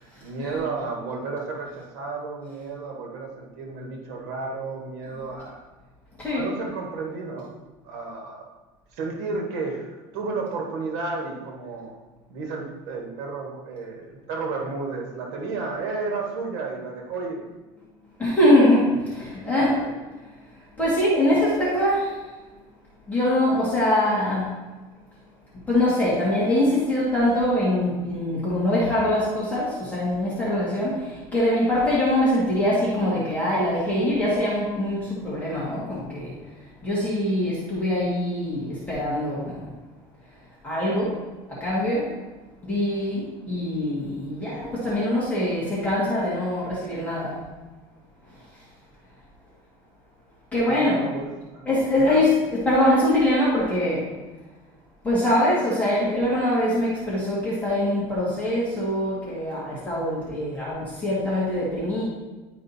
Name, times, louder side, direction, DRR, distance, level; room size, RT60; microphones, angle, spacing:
voice 1, 0.2-5.6 6.3-7.5 7.8-8.5 8.9-12.0 12.3-17.4 19.8-20.0 50.7-51.7 52.0-52.2, right 4 dB, 75° right, 0 dB, 1.5 m, -32 dB
voice 2, 6.2-6.5 18.2-19.8 20.3-20.4 20.8-22.2 23.1-24.5 25.7-39.7 40.6-41.2 41.5-42.1 42.6-47.4 48.3-48.4 50.5-51.0 51.7-54.1 55.0-62.0, left 1 dB, 10° left, -8 dB, 1.8 m, -23 dB
11.0 x 5.1 x 2.7 m, 1.2 s
cardioid pair, 160°, 12 cm